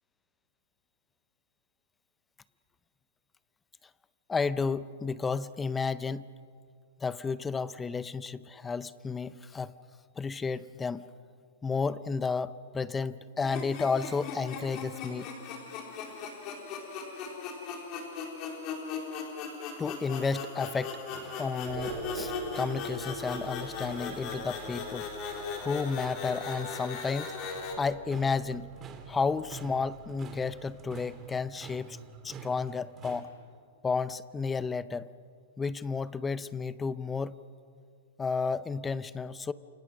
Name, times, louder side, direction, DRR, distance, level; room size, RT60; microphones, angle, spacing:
voice 1, 4.3-6.3 7.0-9.7 10.2-11.1 11.6-15.3 19.8-21.0 21.4-25.1 25.6-27.4 27.7-28.7 29.1-32.0 32.2-33.3 33.8-35.1 35.6-37.4 38.2-39.5, left 5 dB, 10° left, 16 dB, 0.6 m, -32 dB
sound 1, 13.4-27.7, left 5 dB, 30° left, 4.0 m, -38 dB
sound 2, 20.6-33.2, right 7 dB, 20° right, 2.1 m, -50 dB
sound 3, 21.7-31.9, right 4 dB, 55° right, 5.1 m, -47 dB
29.0 x 28.5 x 6.2 m, 2.2 s
hypercardioid pair, 160°, 0 cm